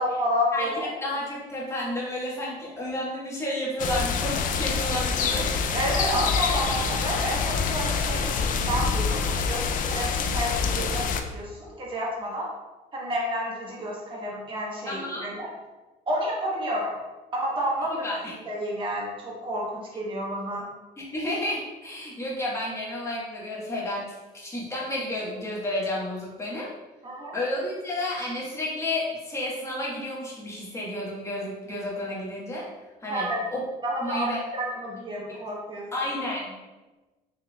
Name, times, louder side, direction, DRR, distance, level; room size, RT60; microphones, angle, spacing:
voice 1, 0.0-0.9 5.7-12.5 12.9-15.5 16.1-16.9 17.3-18.1 18.4-20.7 27.0-27.4 33.1-33.5 33.8-35.8, equal, 30° right, -4 dB, 1.2 m, -30 dB
voice 2, 1.0-5.5 14.9-15.3 18.0-18.3 21.1-26.7 27.3-32.7 33.0-33.3 33.5-33.6 34.0-34.4 35.3-35.4 35.9-36.5, left 1 dB, 15° left, -5 dB, 1.2 m, -31 dB
sound 1, 3.8-11.2, left 5 dB, 55° left, 0.4 m, -26 dB
4.0 x 3.3 x 2.2 m, 1.2 s
cardioid pair, 110°, 17 cm